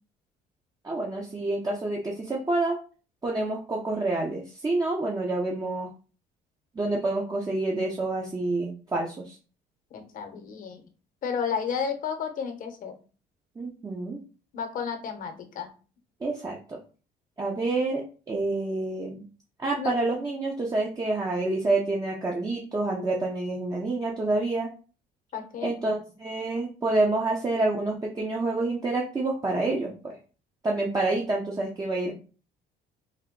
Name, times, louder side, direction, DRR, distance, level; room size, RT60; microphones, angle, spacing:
voice 1, 0.8-2.8 3.2-5.9 6.7-9.4 13.6-14.2 16.2-16.8 17.4-19.2 19.6-24.7 25.6-30.1 30.6-32.1, right 2 dB, 20° right, -2 dB, 0.7 m, -28 dB
voice 2, 9.9-10.8 11.2-12.9 14.5-15.7 19.8-20.0 25.3-25.7, left 6 dB, 55° left, 5 dB, 0.9 m, -32 dB
3.5 x 2.2 x 3.6 m, 0.36 s
cardioid pair, 110°, 17 cm